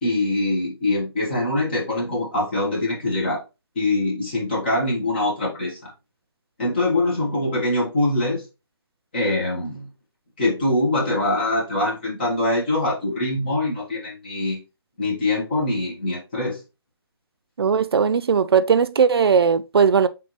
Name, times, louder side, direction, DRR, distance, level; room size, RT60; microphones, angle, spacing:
voice 1, 0.0-3.4 3.7-5.9 6.6-8.4 9.1-9.9 10.4-14.6 15.0-16.6, left 2 dB, 25° left, 1.3 m, -23 dB
voice 2, 17.6-20.1, right 6 dB, 70° right, 0.4 m, -18 dB
4.4 x 3.6 x 2.9 m
hypercardioid pair, 175°, 13 cm